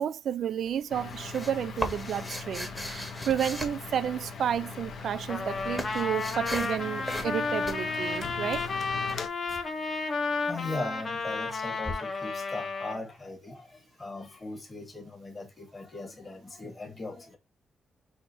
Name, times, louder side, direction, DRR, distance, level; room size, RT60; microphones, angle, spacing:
voice 1, 0.0-8.6, right 9 dB, 65° right, 0.4 m, -31 dB
sound 1, 0.7-4.5 5.2-6.8 7.1-7.4 7.6-9.6 11.9-12.0, equal, 5° left, 1.1 m, -38 dB
sound 2, 0.9-9.3, left 5 dB, 60° left, 0.9 m, -40 dB
Trumpet, 5.3-13.0, left 4 dB, 35° left, 1.1 m, -32 dB
voice 2, 10.4-17.4, left 2 dB, 20° left, 1.7 m, -39 dB
6.2 x 2.9 x 2.8 m
wide cardioid pair, 145°, 0 cm